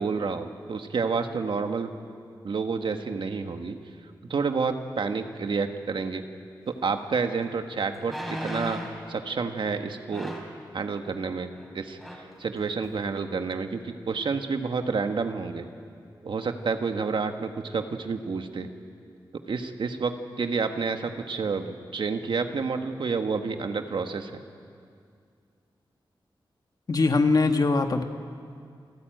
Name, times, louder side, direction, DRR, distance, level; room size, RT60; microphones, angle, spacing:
voice 1, 0.0-1.9 2.4-3.8 4.3-6.2 6.7-8.8 9.1-10.3 10.7-15.7 16.2-18.7 19.5-24.4, right 5 dB, 75° right, 6 dB, 1.4 m, -29 dB
sound 1, 7.0-7.1 8.0-9.0 10.1-10.6 11.5-11.7 12.0-12.3 12.8-12.9, equal, ahead, 4.2 m, -36 dB
voice 2, 26.9-28.0, left 3 dB, 50° left, 6 dB, 1.4 m, -22 dB
27.5 x 14.0 x 9.2 m, 2.3 s
wide cardioid pair, 100°, 9 cm